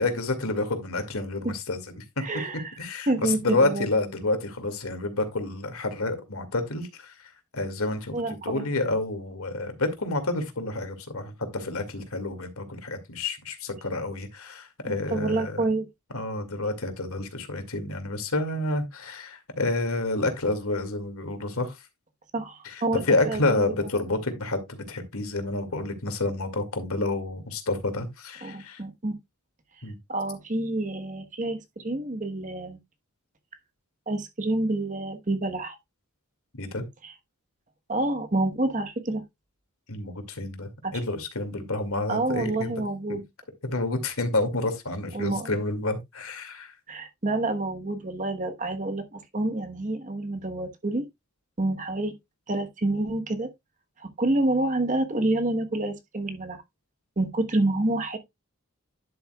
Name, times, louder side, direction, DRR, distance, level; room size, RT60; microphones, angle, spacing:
voice 1, 0.0-2.2 2.8-8.2 8.4-15.6 16.1-21.8 22.6-28.8 29.8-30.0 36.6-36.8 39.9-42.7 43.6-46.7, left 2 dB, 75° left, 2.2 m, -29 dB
voice 2, 2.2-2.7 3.1-3.8 8.1-8.7 14.9-15.8 22.3-23.6 28.4-29.1 30.1-32.8 34.1-35.8 37.0-37.1 37.9-39.2 40.8-41.0 42.1-43.2 45.1-45.5 46.9-51.0 51.6-52.1 52.5-53.5 54.0-56.6 57.2-58.2, right 2 dB, 35° right, 1.2 m, -28 dB
10.5 x 7.7 x 2.3 m
head